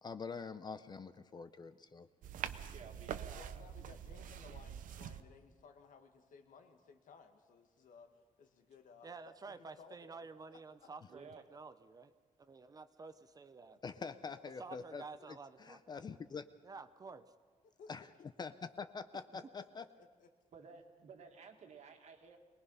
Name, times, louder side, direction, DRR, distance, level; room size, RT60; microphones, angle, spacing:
voice 1, 0.0-2.1 13.8-15.0 15.3-16.5 17.9-18.1 18.4-19.9, left 5 dB, 30° left, 12 dB, 0.5 m, -45 dB
sound 1, 2.2-5.2, right 9 dB, 85° right, 0.8 m, -45 dB
voice 2, 2.7-3.6 11.1-11.4 20.5-22.4, right 5 dB, 60° right, 4 dB, 2.0 m, -54 dB
voice 3, 3.3-8.1 8.4-10.9 13.9-14.0 14.5-14.8 17.6-17.9 18.2-18.3 19.6-20.3, left 5 dB, 80° left, 6 dB, 1.9 m, -60 dB
voice 4, 9.0-12.1 12.4-13.8 14.6-16.0 16.6-17.3, right 4 dB, 30° right, 11 dB, 0.6 m, -51 dB
23.5 x 20.0 x 5.6 m, 1.5 s
wide cardioid pair, 165°, 14 cm